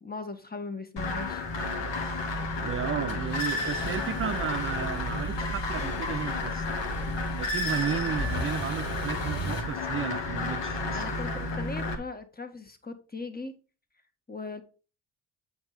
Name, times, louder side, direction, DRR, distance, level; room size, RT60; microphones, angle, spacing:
voice 1, 0.0-1.4 10.9-13.5 14.3-14.6, left 3 dB, 20° left, 7 dB, 1.7 m, -38 dB
sound 1, 1.0-11.9, left 2 dB, 60° left, 1.7 m, -31 dB
voice 2, 2.6-6.7 7.4-11.1, right 7 dB, 25° right, 10 dB, 0.6 m, -33 dB
sound 2, 3.1-9.6, equal, 45° left, 2.8 m, -38 dB
7.9 x 3.8 x 5.8 m, 0.34 s
hypercardioid pair, 45°, 48 cm